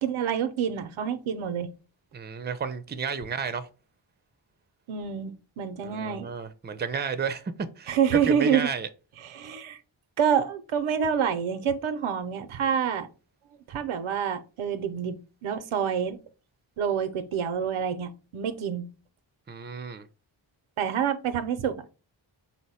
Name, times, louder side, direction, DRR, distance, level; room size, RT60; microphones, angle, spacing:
voice 1, 0.0-1.7 4.9-6.3 7.9-8.7 9.2-9.8 10.2-13.1 13.7-15.2 15.4-16.2 16.8-18.9 20.8-21.8, right 7 dB, 90° right, 0.6 m, -27 dB
voice 2, 2.1-3.7 5.8-8.9 19.5-20.1, right 6 dB, 25° right, 0.4 m, -32 dB
4.2 x 2.1 x 4.0 m
cardioid pair, 50°, 47 cm